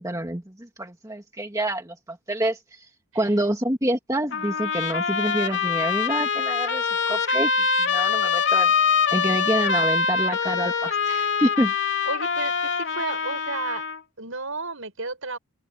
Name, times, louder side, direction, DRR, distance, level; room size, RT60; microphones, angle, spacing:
voice 1, 0.0-2.9 3.1-11.7, right 1 dB, 15° right, 2.0 m, -27 dB
voice 2, 3.1-3.4 12.1-13.8 14.2-15.4, right 3 dB, 65° right, 6.7 m, -33 dB
Trumpet, 4.3-14.0, left 6 dB, 55° left, 3.2 m, -24 dB
open air
head